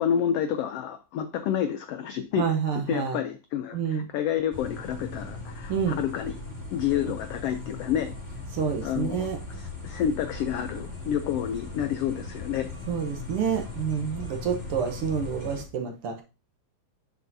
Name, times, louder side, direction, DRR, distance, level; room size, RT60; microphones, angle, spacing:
voice 1, 0.0-2.5 2.7-6.3 6.7-8.1 8.8-9.3 9.6-12.7, left 9 dB, 80° left, 8 dB, 1.4 m, -29 dB
voice 2, 2.4-3.2 3.7-4.1 5.7-6.0 7.0-7.1 8.5-9.4 12.9-16.2, right 7 dB, 65° right, 4 dB, 1.5 m, -28 dB
sound 1, 4.5-15.6, left 3 dB, 25° left, 2.0 m, -38 dB
8.2 x 7.2 x 2.7 m, 0.32 s
omnidirectional pair, 3.4 m